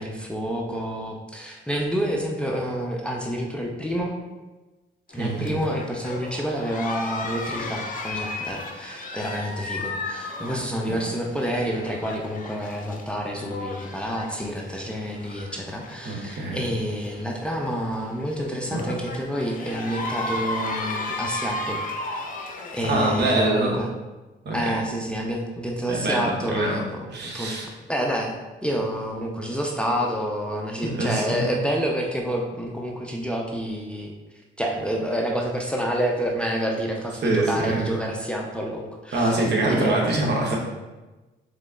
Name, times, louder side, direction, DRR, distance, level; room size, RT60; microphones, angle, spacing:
voice 1, 0.0-4.1 5.1-21.8 22.1-22.2 22.7-23.9 24.5-28.3 28.6-34.1 34.6-39.4 39.7-40.0, equal, 5° left, 0 dB, 0.5 m, -28 dB
sound 1, 5.1-22.9, left 2 dB, 45° left, 0.7 m, -35 dB
voice 2, 5.1-5.6 16.0-16.6 22.9-23.7 24.4-24.7 25.9-26.8 27.1-27.7 30.8-31.5 37.2-37.9 39.1-40.6, right 2 dB, 60° right, -1 dB, 1.1 m, -24 dB
sound 2, 10.9-13.8 18.7-19.0, right 1 dB, 35° right, 1.0 m, -39 dB
3.9 x 3.2 x 3.7 m, 1.2 s
cardioid pair, 90°, 20 cm